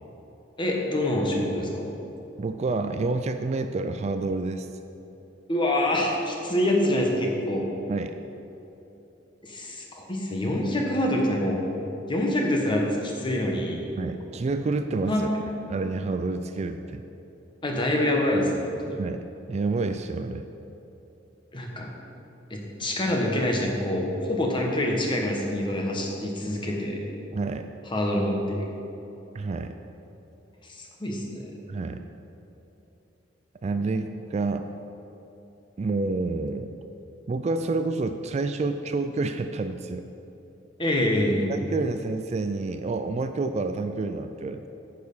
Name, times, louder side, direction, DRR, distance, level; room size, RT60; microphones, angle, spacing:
voice 1, 0.6-1.9 5.5-7.7 9.4-11.6 12.1-13.9 14.3-14.4 15.1-15.4 17.6-19.0 21.5-21.9 22.5-27.0 27.9-28.7 30.8-31.5 40.8-41.5, left 1 dB, 25° left, 0 dB, 1.3 m, -26 dB
voice 2, 2.4-4.7 7.9-8.2 14.0-15.3 15.7-17.0 19.0-20.5 27.3-27.7 29.3-29.7 31.7-32.0 33.6-34.7 35.8-36.7 37.3-40.0 41.5-44.7, right 3 dB, 35° right, 8 dB, 0.3 m, -28 dB
9.3 x 6.7 x 5.5 m, 3.0 s
head